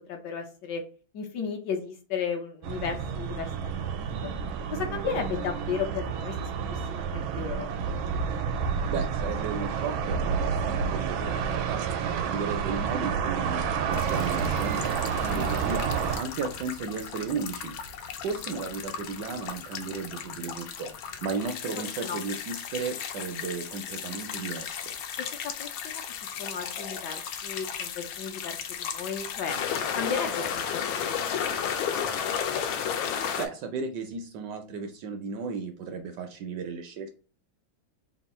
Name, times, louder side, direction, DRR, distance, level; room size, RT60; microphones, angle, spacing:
voice 1, 0.1-0.8 1.1-4.0 4.2-4.3 4.7-7.7 15.2-15.5 21.8-22.2 25.2-29.6 29.9-32.4, left 6 dB, 70° left, 4 dB, 1.2 m, -35 dB
sound 1, 2.6-16.2, right 6 dB, 90° right, 1.4 m, -29 dB
voice 2, 8.9-11.8 12.2-13.6 13.9-15.0 15.3-15.9 16.1-17.7 18.2-20.9 21.2-24.9 33.4-37.1, right 5 dB, 70° right, 5 dB, 1.0 m, -34 dB
sound 2, 13.9-33.5, left 8 dB, 85° left, 1.4 m, -34 dB
3.5 x 2.4 x 4.1 m, 0.38 s
omnidirectional pair, 2.2 m